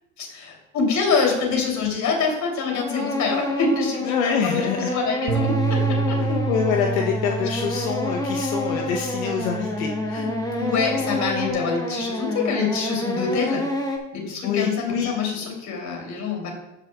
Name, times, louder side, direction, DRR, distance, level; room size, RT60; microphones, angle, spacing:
voice 1, 0.2-6.2 8.6-8.8 10.5-13.7 14.1-16.5, left 5 dB, 45° left, 0 dB, 2.9 m, -25 dB
sound 1, 2.5-14.0, left 1 dB, 10° left, 1.2 m, -28 dB
voice 2, 4.0-4.9 6.3-10.4 14.4-15.1, left 6 dB, 80° left, 2 dB, 0.9 m, -26 dB
Bass guitar, 5.3-11.5, right 4 dB, 40° right, 0.9 m, -29 dB
14.0 x 5.9 x 2.3 m, 0.95 s
hypercardioid pair, 95°, 40 cm